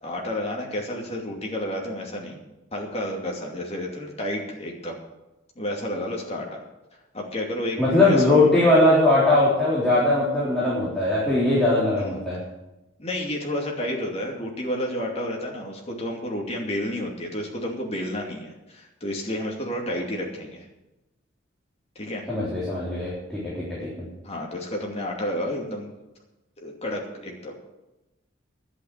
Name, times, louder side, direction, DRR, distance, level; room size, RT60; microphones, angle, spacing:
voice 1, 0.0-2.4 2.7-5.0 5.6-6.6 7.1-8.2 13.0-20.7 22.0-22.2 24.2-25.9 26.6-27.6, left 1 dB, 30° left, 0 dB, 2.6 m, -31 dB
voice 2, 7.8-12.4 22.3-24.1, left 2 dB, 5° left, -9 dB, 3.8 m, -20 dB
11.0 x 8.4 x 8.7 m, 1.0 s
head